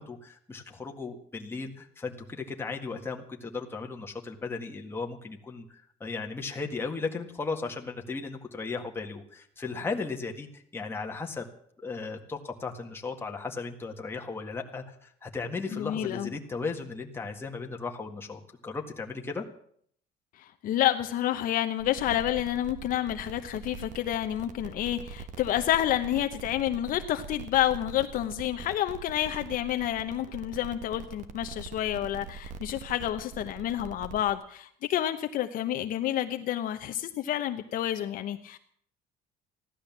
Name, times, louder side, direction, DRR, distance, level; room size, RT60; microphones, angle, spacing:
voice 1, 0.0-11.5 11.8-19.5, left 4 dB, 15° left, 2 dB, 1.8 m, -36 dB
voice 2, 15.7-16.3 20.4-38.6, left 12 dB, 55° left, 8 dB, 0.9 m, -29 dB
sound 1, 21.8-34.3, right 5 dB, 45° right, 1.4 m, -43 dB
15.5 x 11.5 x 7.3 m, 0.62 s
cardioid pair, 155°, 17 cm